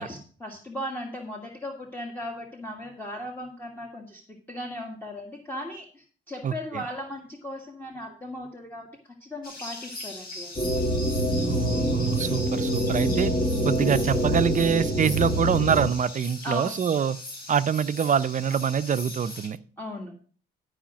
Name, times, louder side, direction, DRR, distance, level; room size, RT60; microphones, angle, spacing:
voice 1, 0.0-4.2 4.5-10.5 16.4-16.7 19.8-20.1, left 1 dB, 10° left, 1 dB, 1.7 m, -37 dB
voice 2, 6.4-6.8 11.5-13.3 13.6-17.2 17.5-19.6, right 7 dB, 40° right, 14 dB, 0.6 m, -25 dB
sound 1, 9.4-19.5, left 2 dB, 50° left, 3.8 m, -40 dB
sound 2, 10.6-15.9, equal, 30° left, 2.1 m, -26 dB
11.5 x 5.0 x 6.1 m, 0.41 s
cardioid pair, 90°, 20 cm